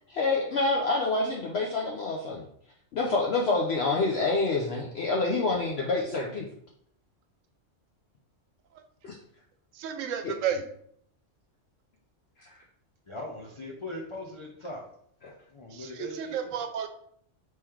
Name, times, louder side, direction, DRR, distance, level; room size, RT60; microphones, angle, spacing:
voice 1, 0.1-2.5 2.9-6.5 9.0-9.2 10.2-10.4 12.4-12.5, left 3 dB, 60° left, -1 dB, 0.8 m, -27 dB
voice 2, 9.7-10.6 15.7-16.9, right 8 dB, 85° right, 7 dB, 1.0 m, -32 dB
voice 3, 13.1-14.9 15.5-16.3, left 2 dB, 40° left, -1 dB, 0.4 m, -40 dB
3.7 x 3.2 x 4.4 m, 0.66 s
omnidirectional pair, 1.3 m